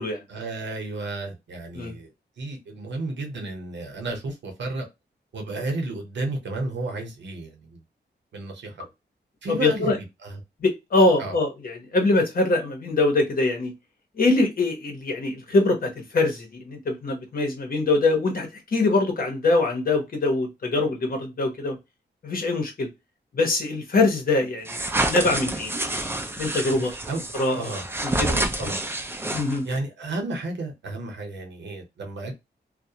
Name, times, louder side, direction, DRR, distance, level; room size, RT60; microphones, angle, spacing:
voice 1, 0.3-2.1 2.4-4.9 5.3-7.8 8.3-8.8 9.4-9.9 10.2-10.4 11.2-11.3 26.7-27.2 27.6-27.8 28.3-28.8 29.6-32.3, right 2 dB, 80° right, 0.8 m, -32 dB
voice 2, 9.5-10.0 10.6-13.7 14.2-21.8 22.2-22.9 23.3-24.8 25.1-25.7 26.4-27.7 28.0-28.3 28.6-28.7 29.3-29.6, left 2 dB, 50° left, 0.9 m, -23 dB
sound 1, 24.6-29.8, right 1 dB, 15° right, 0.4 m, -28 dB
2.3 x 2.1 x 2.8 m
wide cardioid pair, 175°, 18 cm